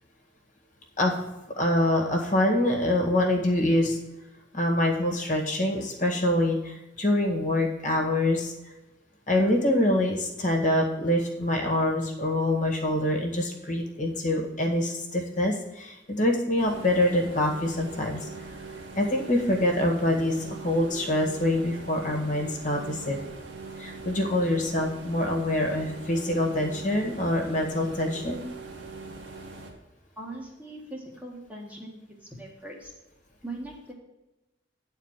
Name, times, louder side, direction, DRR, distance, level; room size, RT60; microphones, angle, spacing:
voice 1, 1.6-4.0 4.5-8.7 9.3-18.3 19.0-23.3 23.8-28.4, left 1 dB, 40° left, 1 dB, 1.9 m, -25 dB
sound 1, 16.6-29.7, right 3 dB, 65° right, 1.9 m, -42 dB
voice 2, 30.2-32.9 33.4-33.9, right 1 dB, 5° right, -2 dB, 1.6 m, -40 dB
10.0 x 4.5 x 7.4 m, 1.0 s
head